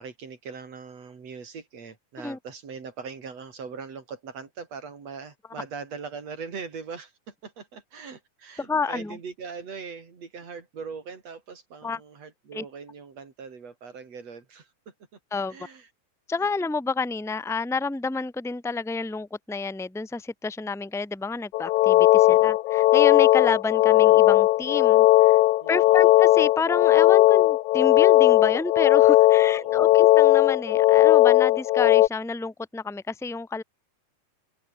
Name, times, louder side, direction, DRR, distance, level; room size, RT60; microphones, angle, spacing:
voice 1, 0.0-14.9 15.3-15.9 16.4-16.5 22.2-22.5 25.6-26.1 29.5-30.0, right 5 dB, 60° right, 4.9 m, -41 dB
voice 2, 8.6-9.2 11.8-12.0 12.5-12.6 15.3-15.6 16.3-25.4 25.7-33.6, left 4 dB, ahead, 2.1 m, -30 dB
sound 1, 21.5-32.1, left 17 dB, 90° left, 2.1 m, -17 dB
omnidirectional pair, 3.3 m